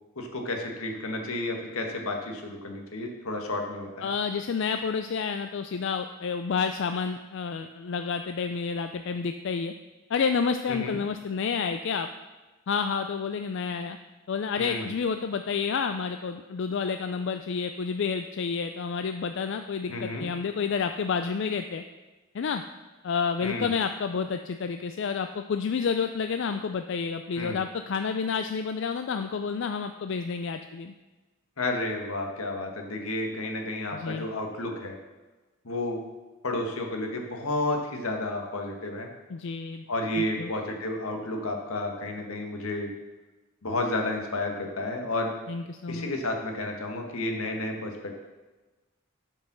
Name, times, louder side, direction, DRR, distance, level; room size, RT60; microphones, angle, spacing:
voice 1, 0.1-4.1 10.7-11.0 14.6-14.8 19.9-20.2 23.4-23.7 27.4-27.6 31.6-34.9 35.6-36.0 36.4-39.1 39.9-42.9 43.6-45.3 45.9-48.2, left 2 dB, 80° left, 2 dB, 1.6 m, -31 dB
voice 2, 4.0-9.7 10.1-12.1 12.7-14.0 14.3-21.8 22.3-22.6 23.0-30.9 33.9-34.3 39.3-39.8 40.2-40.5 45.5-46.1, left 5 dB, 55° left, 7 dB, 0.4 m, -29 dB
9.2 x 5.5 x 6.1 m, 1.2 s
head